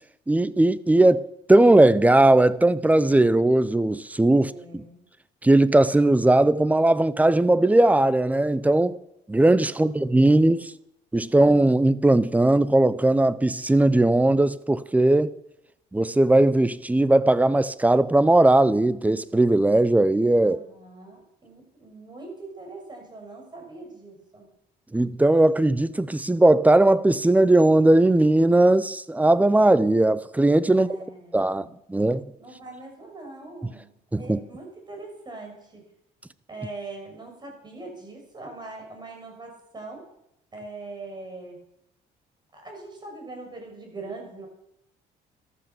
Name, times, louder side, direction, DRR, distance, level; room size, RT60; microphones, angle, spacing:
voice 1, 0.3-4.8 5.4-9.0 9.3-10.7 11.1-15.3 15.9-20.6 24.9-31.0 31.3-32.2 34.1-34.4, right 2 dB, 10° right, 0.6 m, -19 dB
voice 2, 4.3-5.0 9.7-9.9 10.2-10.7 11.2-11.6 20.4-24.5 30.7-31.7 32.4-35.8 36.5-40.0 40.5-41.6 42.5-44.5, right 3 dB, 25° right, 6.4 m, -42 dB
13.5 x 13.0 x 7.1 m
cardioid pair, 110°, 17 cm